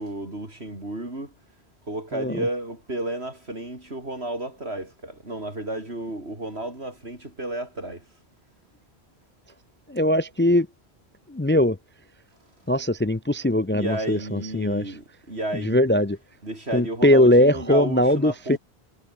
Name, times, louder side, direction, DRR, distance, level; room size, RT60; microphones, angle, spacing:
voice 1, 0.0-1.3 1.9-8.1 13.7-15.8 16.4-18.6, right 1 dB, 80° right, 6.7 m, -32 dB
voice 2, 2.1-2.4 9.9-10.7 11.3-11.8 12.7-14.9 15.5-16.2 16.7-18.6, left 1 dB, 15° left, 0.5 m, -20 dB
omnidirectional pair, 1.1 m